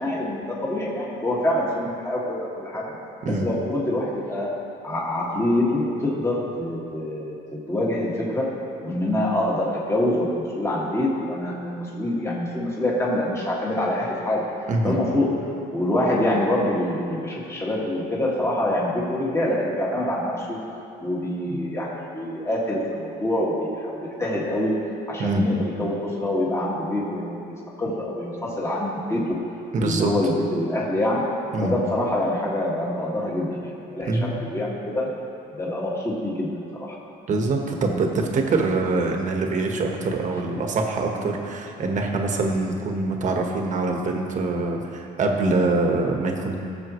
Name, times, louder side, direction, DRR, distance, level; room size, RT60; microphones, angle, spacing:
voice 1, 0.0-2.9 3.4-4.5 4.8-8.5 8.8-14.4 14.8-15.3 15.7-20.6 21.0-24.8 25.1-29.4 29.8-31.3 31.6-34.2 34.5-35.1 35.5-36.5 36.8-36.9, left 1 dB, 15° left, -5 dB, 2.1 m, -25 dB
voice 2, 29.7-30.1 31.5-31.7 34.0-34.4 37.3-46.6, right 3 dB, 45° right, 2 dB, 1.4 m, -24 dB
18.5 x 7.0 x 3.2 m, 2.7 s
cardioid pair, 110°, 17 cm